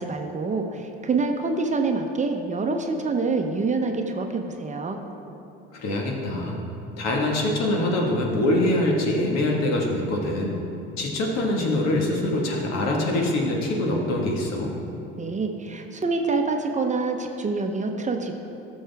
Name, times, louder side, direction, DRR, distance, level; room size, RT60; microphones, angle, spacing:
voice 1, 0.0-5.0 15.2-18.3, right 3 dB, 25° right, 4 dB, 0.9 m, -26 dB
voice 2, 5.7-6.6 7.0-10.6 11.0-14.7, left 1 dB, 60° left, -1 dB, 1.8 m, -24 dB
14.0 x 6.4 x 3.5 m, 2.9 s
hypercardioid pair, 65°, 30 cm